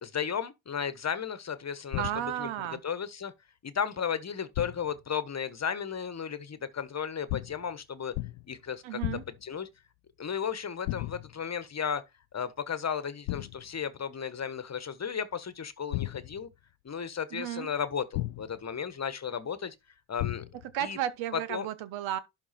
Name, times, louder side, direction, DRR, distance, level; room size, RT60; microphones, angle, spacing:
voice 1, 0.0-2.1 2.4-2.5 2.8-3.3 3.6-8.1 8.5-9.0 9.4-9.7 10.2-12.0 12.3-16.5 16.8-19.7 20.1-20.4 20.8-21.0 21.3-21.7, left 7 dB, 35° left, 1.3 m, -34 dB
sound 1, 1.9-2.5 4.5-5.0 7.3-7.7 8.1-8.6 9.0-9.5 10.8-11.4 13.3-13.7 15.9-16.5 18.1-18.7 20.2-20.7, left 21 dB, 80° left, 0.6 m, -35 dB
voice 2, 2.0-2.8 8.8-9.2 17.3-17.7 20.7-22.2, right 11 dB, 70° right, 1.3 m, -33 dB
11.5 x 4.3 x 4.3 m
supercardioid pair, 65°, 49 cm